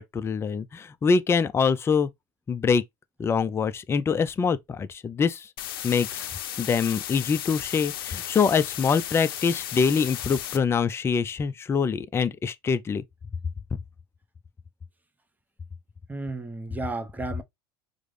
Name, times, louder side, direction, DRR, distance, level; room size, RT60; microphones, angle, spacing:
voice 1, 0.0-2.1 2.5-2.8 3.2-5.5 5.8-6.3 6.6-13.0, left 5 dB, 20° left, 0.4 m, -24 dB
sound 1, 5.6-10.6, left 11 dB, 80° left, 0.5 m, -35 dB
voice 2, 16.1-17.4, right 2 dB, 15° right, 0.7 m, -33 dB
4.9 x 2.1 x 3.2 m
hypercardioid pair, 80°, 12 cm